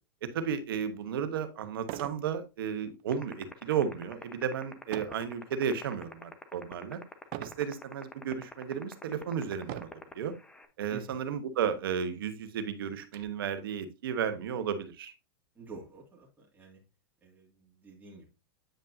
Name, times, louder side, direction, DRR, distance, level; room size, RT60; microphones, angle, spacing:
voice 1, 0.2-7.0 7.4-10.3 10.8-15.1, right 7 dB, 75° right, 10 dB, 1.2 m, -33 dB
sound 1, 0.9-1.0 1.8-2.3 2.7-3.0 4.9-5.3 5.9-6.3 7.3-7.7 8.4-8.5 9.6-10.1 11.1-11.2 11.6-11.7 12.1-13.2, right 13 dB, 50° right, 0.5 m, -41 dB
sound 2, 3.1-10.7, left 3 dB, 10° left, 0.9 m, -43 dB
voice 2, 10.9-11.2 15.5-16.8 17.2-18.3, right 3 dB, 15° right, -3 dB, 2.3 m, -49 dB
8.9 x 5.3 x 2.6 m, 0.27 s
hypercardioid pair, 120°, 12 cm